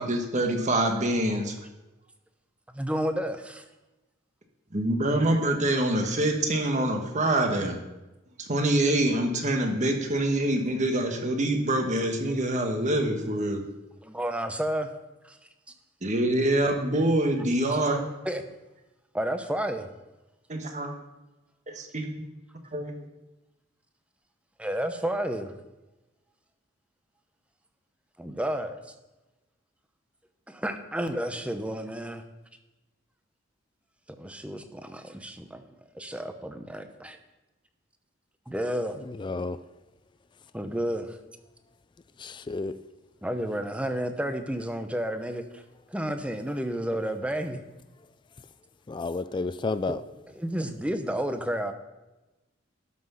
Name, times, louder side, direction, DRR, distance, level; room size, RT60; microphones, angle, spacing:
voice 1, 0.0-1.5 4.7-7.8 8.4-13.6 16.0-18.0 20.5-21.0 21.7-22.1 22.7-23.0, right 1 dB, 35° right, 1.4 m, -25 dB
voice 2, 2.7-3.6 14.0-14.9 15.2-15.4 18.2-18.4 19.1-19.9 24.6-25.5 28.2-28.8 30.5-32.2 34.2-35.6 35.9-37.2 38.5-39.0 40.5-41.2 43.2-45.6 45.9-47.6 50.3-51.7, right 1 dB, 5° right, 0.7 m, -31 dB
voice 3, 39.2-39.6 42.2-42.8 48.9-50.0, left 3 dB, 25° left, 0.3 m, -31 dB
12.5 x 6.1 x 5.6 m
head